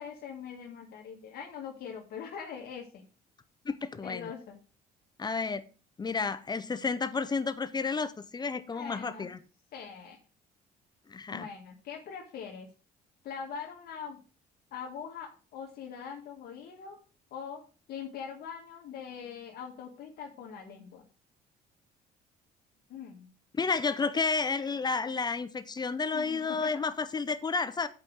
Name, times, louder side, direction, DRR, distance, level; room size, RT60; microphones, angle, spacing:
voice 1, 0.0-3.1 4.0-4.6 8.7-9.3 9.7-10.2 11.3-12.7 13.2-14.2 14.7-17.0 17.3-17.6 17.9-21.1 22.9-23.3 26.1-26.7, left 7 dB, 65° left, 1.7 m, -42 dB
voice 2, 3.6-4.3 5.2-5.6 6.0-9.4 11.1-11.5 23.5-27.9, left 4 dB, 25° left, 0.8 m, -31 dB
8.2 x 5.2 x 6.2 m
cardioid pair, 110°, 17 cm